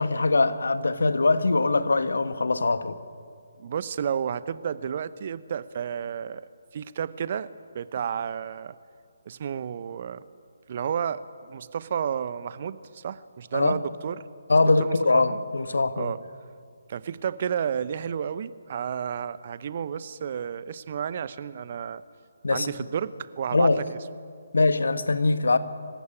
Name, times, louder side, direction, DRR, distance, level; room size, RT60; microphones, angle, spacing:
voice 1, 0.0-3.0 13.5-13.8 14.5-16.1 22.4-22.7 23.5-23.8 24.5-25.6, left 3 dB, 65° left, 1.4 m, -22 dB
voice 2, 3.6-7.5 7.7-8.8 9.3-10.2 10.7-14.3 14.8-15.4 16.0-16.2 16.9-22.0 22.5-24.0, right 8 dB, 40° right, 0.8 m, -31 dB
25.0 x 15.0 x 9.8 m
figure-of-eight pair, 145°, 0 cm